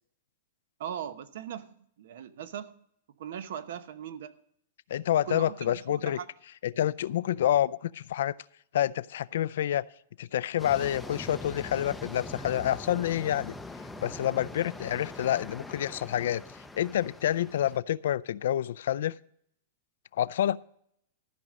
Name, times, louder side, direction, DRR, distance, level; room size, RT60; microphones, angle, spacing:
voice 1, 0.8-1.7 2.0-2.8 3.2-4.3 5.3-6.2, right 9 dB, 70° right, 13 dB, 0.9 m, -39 dB
voice 2, 4.9-6.2 6.6-8.4 8.7-9.9 10.2-13.5 14.0-16.4 16.7-19.1 20.2-20.6, left 11 dB, 75° left, 17 dB, 0.4 m, -28 dB
sound 1, 10.6-17.8, left 2 dB, 5° left, 0.5 m, -42 dB
14.0 x 5.2 x 7.4 m, 0.68 s
supercardioid pair, 150°, 0 cm